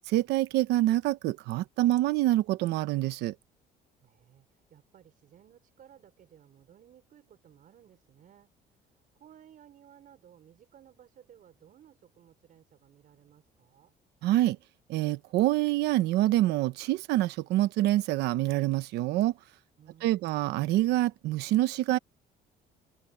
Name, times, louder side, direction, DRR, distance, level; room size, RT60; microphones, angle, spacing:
voice 1, 0.1-3.3 14.2-14.6 14.9-19.3 20.0-22.0, right 16 dB, 85° right, 1.1 m, -26 dB
voice 2, 4.0-14.0 19.8-20.6, right 10 dB, 55° right, 5.1 m, -58 dB
cardioid pair, 110°, 17 cm